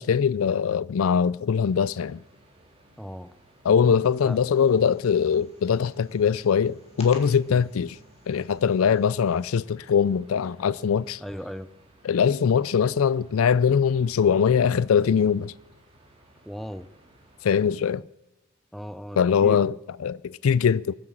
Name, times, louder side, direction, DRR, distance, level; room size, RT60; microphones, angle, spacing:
voice 1, 0.0-2.2 3.6-8.0 8.3-11.2 12.0-15.5 17.4-18.0 19.2-20.9, left 7 dB, 80° left, 0.4 m, -22 dB
sound 1, 1.6-17.8, right 1 dB, 25° right, 2.6 m, -57 dB
voice 2, 3.0-3.3 4.2-4.4 11.2-11.7 16.4-16.9 18.7-19.6, equal, ahead, 0.5 m, -37 dB
sound 2, 4.1-9.6, left 2 dB, 30° left, 2.0 m, -50 dB
20.0 x 7.9 x 7.3 m
head